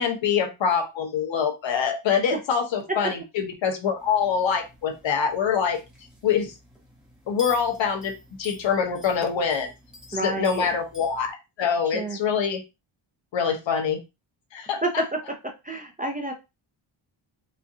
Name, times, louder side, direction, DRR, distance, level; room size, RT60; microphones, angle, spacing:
voice 1, 0.0-5.8 6.2-6.5 7.3-8.1 8.4-9.7 10.1-12.6 13.3-14.0 14.5-15.0, left 7 dB, 60° left, 4 dB, 0.9 m, -25 dB
sound 1, 4.0-11.3, left 2 dB, ahead, 1.0 m, -46 dB
voice 2, 10.1-10.7 11.9-12.2 14.8-15.2 15.6-16.3, right 2 dB, 20° right, 2 dB, 0.4 m, -28 dB
4.2 x 2.4 x 2.7 m, 0.25 s
wide cardioid pair, 145°, 50 cm